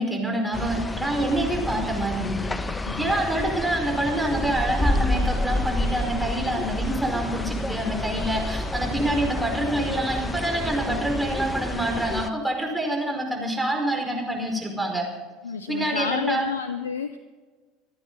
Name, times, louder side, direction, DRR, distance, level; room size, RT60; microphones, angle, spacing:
voice 1, 0.0-15.0 15.7-16.5, right 1 dB, 5° right, 1 dB, 5.1 m, -26 dB
sound 1, 0.5-12.3, left 2 dB, 15° left, 1.0 m, -29 dB
voice 2, 15.4-17.2, left 6 dB, 90° left, 11 dB, 0.6 m, -30 dB
27.0 x 9.7 x 4.1 m, 1.4 s
hypercardioid pair, 75°, 0 cm